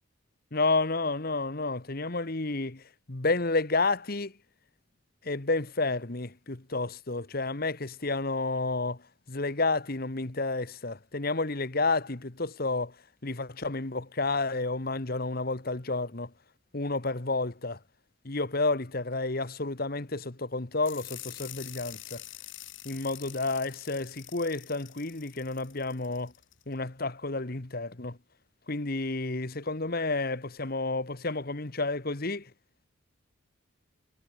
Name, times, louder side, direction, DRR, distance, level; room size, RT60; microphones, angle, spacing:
voice 1, 0.5-2.8 3.1-4.3 5.2-9.0 9.3-12.9 13.2-16.3 16.7-17.8 18.2-22.2 22.8-26.3 26.7-28.2 28.7-32.5, left 3 dB, 45° left, 1.4 m, -30 dB
sound 1, 20.8-26.6, left 14 dB, 70° left, 6.1 m, -46 dB
head